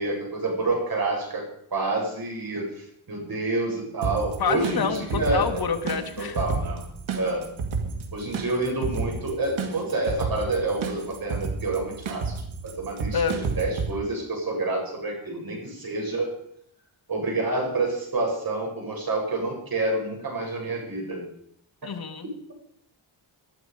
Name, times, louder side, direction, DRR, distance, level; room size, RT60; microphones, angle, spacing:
voice 1, 0.0-1.4 1.7-5.6 6.2-6.8 7.1-7.5 8.1-12.3 12.6-16.3 17.1-21.2, right 2 dB, 50° right, -1 dB, 7.5 m, -28 dB
sound 1, 4.0-13.9, right 4 dB, 85° right, 2.3 m, -31 dB
voice 2, 4.4-6.4 13.1-13.4 21.8-22.3, left 6 dB, 50° left, 5 dB, 2.0 m, -27 dB
20.5 x 11.5 x 5.1 m, 0.68 s
wide cardioid pair, 120°, 46 cm